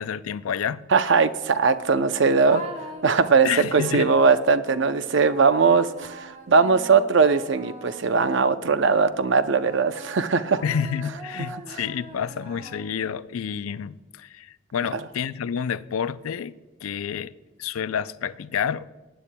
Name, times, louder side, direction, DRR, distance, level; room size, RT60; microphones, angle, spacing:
voice 1, 0.0-0.8 3.4-4.1 10.6-16.5 16.8-17.3 17.6-18.9, left 7 dB, 90° left, 0.4 m, -29 dB
voice 2, 0.9-2.6 3.0-10.6 11.4-11.8, right 5 dB, 60° right, 0.6 m, -20 dB
sound 1, 2.4-8.7 9.3-13.2, right 1 dB, 30° right, 1.3 m, -42 dB
20.0 x 10.0 x 2.2 m
head